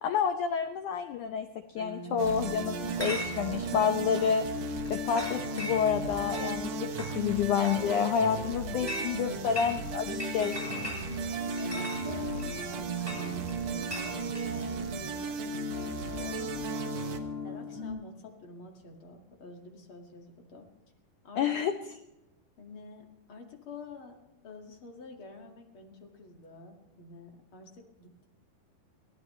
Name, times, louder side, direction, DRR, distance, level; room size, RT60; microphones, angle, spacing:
voice 1, 0.0-1.5 1.7-4.4 4.9-6.9 7.1-10.6 21.4-21.7, left 7 dB, 90° left, 7 dB, 1.7 m, -29 dB
sound 1, 1.8-17.9, equal, 45° right, 7.7 m, -37 dB
sound 2, 2.2-17.2, right 5 dB, 65° right, 1.7 m, -38 dB
Chatter / Chink clink, 2.8-14.5, equal, 5° right, 5.8 m, -42 dB
voice 2, 11.4-13.5 13.8-17.1 17.4-20.7 21.2-21.5 22.6-24.2 24.4-28.3, left 3 dB, 40° left, 2 dB, 2.2 m, -48 dB
23.5 x 16.0 x 3.2 m, 0.95 s
omnidirectional pair, 4.7 m